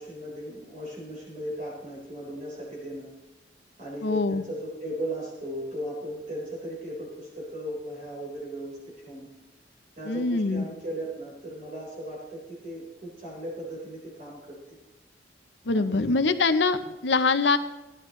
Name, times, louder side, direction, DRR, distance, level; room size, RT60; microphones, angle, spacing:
voice 1, 0.0-3.1 3.8-8.8 9.0-9.3 10.0-14.8 15.7-16.2 16.8-17.0, right 1 dB, 50° right, -5 dB, 4.1 m, -37 dB
voice 2, 4.0-4.4 10.1-10.7 15.7-17.6, left 3 dB, 85° left, 11 dB, 0.7 m, -24 dB
16.0 x 11.5 x 3.2 m, 1.1 s
head